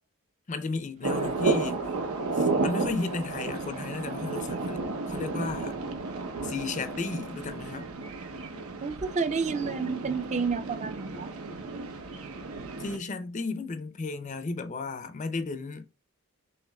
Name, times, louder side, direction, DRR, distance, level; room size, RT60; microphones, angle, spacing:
voice 1, 0.5-1.8 2.3-5.7 6.4-7.9 12.8-15.9, left 3 dB, 35° left, 0.5 m, -34 dB
sound 1, 1.0-13.0, right 3 dB, 90° right, 0.8 m, -32 dB
voice 2, 8.8-11.3, right 5 dB, 35° right, 0.4 m, -30 dB
6.4 x 3.0 x 2.2 m
head